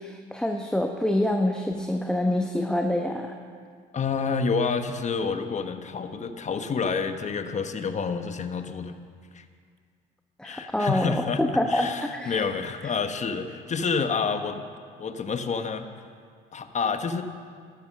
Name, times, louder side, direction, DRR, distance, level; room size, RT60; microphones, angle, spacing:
voice 1, 0.0-3.3 10.4-12.5, left 1 dB, 5° left, 3 dB, 1.0 m, -26 dB
voice 2, 3.9-9.0 9.3-9.4 10.4-11.4 11.7-14.6 15.0-15.9 16.5-17.2, left 5 dB, 35° left, 8 dB, 1.2 m, -28 dB
12.5 x 12.5 x 6.3 m, 2.1 s
supercardioid pair, 80°, 21 cm